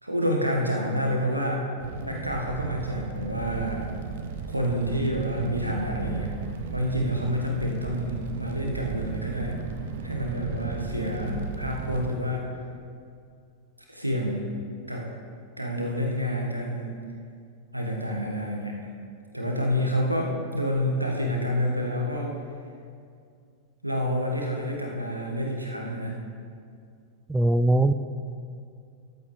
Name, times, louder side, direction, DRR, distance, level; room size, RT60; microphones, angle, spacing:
voice 1, 0.0-1.7 2.0-3.8 4.5-6.3 6.7-9.6 10.0-12.5 13.9-14.5 14.9-15.1 15.6-16.9 17.7-18.8 19.3-22.3 23.8-26.2, equal, 85° right, 0 dB, 1.5 m, -28 dB
Fire, 1.8-12.1, right 5 dB, 55° right, 1.0 m, -35 dB
voice 2, 27.3-27.9, right 1 dB, 5° right, 10 dB, 0.4 m, -20 dB
14.0 x 11.0 x 3.4 m, 2.3 s
figure-of-eight pair, 90°, 0 cm